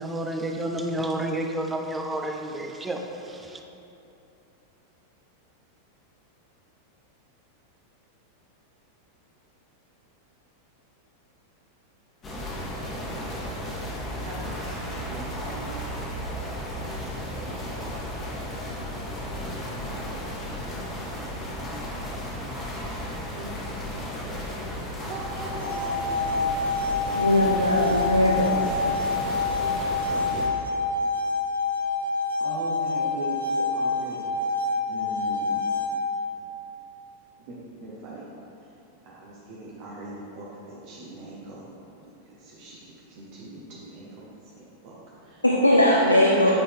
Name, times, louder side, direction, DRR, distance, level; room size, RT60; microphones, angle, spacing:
voice 1, 0.0-3.6, right 1 dB, 10° right, 3 dB, 0.5 m, -30 dB
sound 1, 12.2-30.5, equal, 25° left, 1.4 m, -34 dB
voice 2, 14.1-15.8 16.8-18.0 18.5-18.9 19.3-19.7 20.0-20.2 20.5-20.6 22.0-22.2 22.7-22.8 23.4-23.5 25.0-26.9 28.2-28.6 32.4-34.2 34.9-35.7 37.5-37.6 37.8-38.3 39.0-41.7 42.2-44.3 44.6-45.4 45.7-45.8 46.4-46.5, right 2 dB, 45° right, -5 dB, 0.9 m, -41 dB
sound 2, 25.4-36.3, left 3 dB, 80° right, 1.0 m, -27 dB
voice 3, 27.1-28.5 45.4-46.5, left 1 dB, 85° left, -2 dB, 0.5 m, -20 dB
8.8 x 4.1 x 3.5 m, 2.9 s
figure-of-eight pair, 90°, 0 cm